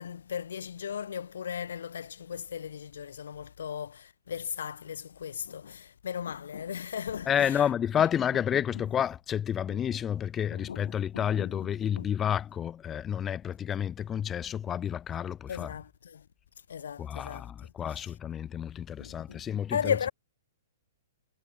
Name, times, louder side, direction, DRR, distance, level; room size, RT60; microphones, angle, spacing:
voice 1, 0.0-7.7 9.7-9.8 10.5-11.6 11.9-12.1 15.5-16.3 16.7-17.5 17.9-18.0 19.0-19.4 19.7-20.1, left 8 dB, 80° left, 1.5 m, -36 dB
voice 2, 7.3-15.7 17.0-19.9, left 9 dB, 15° left, 1.1 m, -30 dB
hypercardioid pair, 160°, 0 cm